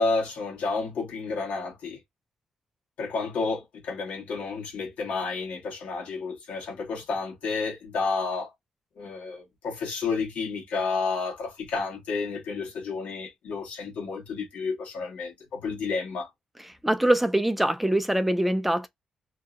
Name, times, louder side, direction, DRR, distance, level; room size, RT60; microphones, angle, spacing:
voice 1, 0.0-2.0 3.0-8.5 9.0-16.3, left 4 dB, 90° left, 1.1 m, -31 dB
voice 2, 16.8-18.9, right 1 dB, 5° right, 0.3 m, -23 dB
2.7 x 2.0 x 2.3 m
cardioid pair, 110°, 2 cm